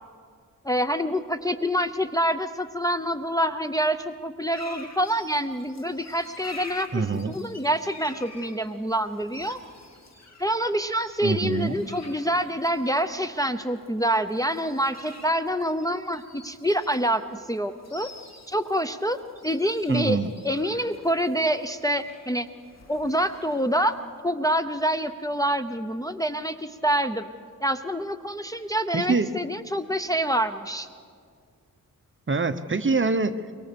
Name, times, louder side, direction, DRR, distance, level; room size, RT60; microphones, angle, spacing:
voice 1, 0.6-9.6 10.4-18.1 18.5-19.2 19.4-20.2 20.4-22.5 22.9-23.9 24.2-27.3 27.6-30.9, equal, 10° left, 7 dB, 0.7 m, -26 dB
sound 1, 4.5-24.2, left 3 dB, 50° left, 2.6 m, -48 dB
voice 2, 6.9-7.4 11.2-11.8 19.9-20.3 28.9-29.3 32.3-33.3, right 4 dB, 35° right, 9 dB, 0.8 m, -24 dB
23.0 x 22.5 x 6.9 m, 2.1 s
wide cardioid pair, 115°, 35 cm